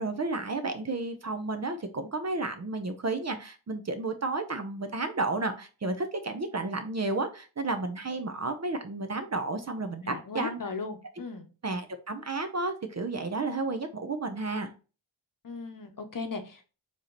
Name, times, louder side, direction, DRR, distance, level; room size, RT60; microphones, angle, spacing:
voice 1, 0.0-10.6 11.6-14.7, right 3 dB, 35° right, 7 dB, 0.7 m, -32 dB
voice 2, 10.0-11.5 15.4-16.6, left 4 dB, 45° left, 6 dB, 0.9 m, -37 dB
4.7 x 2.9 x 3.8 m, 0.34 s
wide cardioid pair, 85°, 46 cm